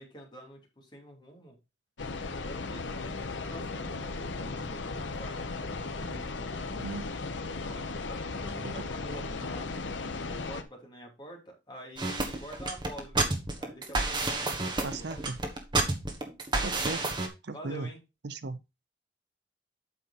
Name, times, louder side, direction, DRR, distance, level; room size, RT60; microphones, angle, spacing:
voice 1, 0.0-1.5 2.4-5.5 5.9-6.6 7.6-9.8 10.1-15.3 16.5-16.9 17.5-18.0, right 1 dB, 25° left, 3.0 m, -47 dB
sound 1, 2.0-10.6, left 3 dB, 75° left, 0.9 m, -36 dB
sound 2, 12.0-17.3, right 2 dB, 25° right, 1.5 m, -30 dB
voice 2, 14.8-15.4 16.6-17.0 17.4-17.9 18.2-18.6, right 3 dB, 60° right, 0.6 m, -36 dB
8.4 x 5.7 x 4.2 m
head